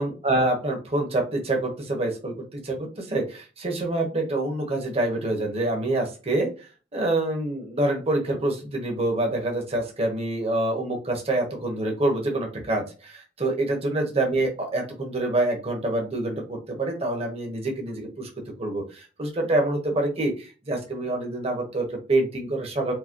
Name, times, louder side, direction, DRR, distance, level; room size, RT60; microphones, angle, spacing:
voice 1, 0.0-6.5 6.9-18.3 18.6-22.9, right 2 dB, 35° right, 1 dB, 1.1 m, -26 dB
4.7 x 2.2 x 4.4 m, 0.33 s
head